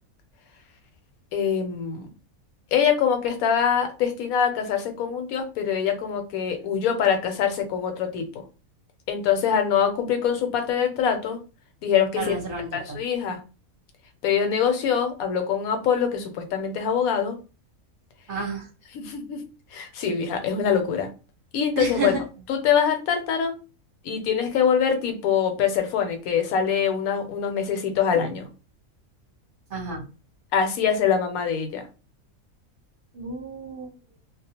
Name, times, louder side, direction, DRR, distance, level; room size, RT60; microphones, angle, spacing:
voice 1, 1.3-2.1 2.7-8.4 9.1-11.4 11.8-12.4 12.7-13.4 14.2-17.3 18.9-19.4 19.7-21.1 21.5-22.2 22.5-23.6 24.0-28.5 30.5-31.8, left 7 dB, 80° left, 6 dB, 1.1 m, -24 dB
voice 2, 12.2-13.0 18.3-18.7 21.8-22.2 29.7-30.0 33.1-33.9, right 3 dB, 45° right, -1 dB, 0.9 m, -31 dB
2.4 x 2.1 x 2.7 m, 0.32 s
omnidirectional pair, 1.5 m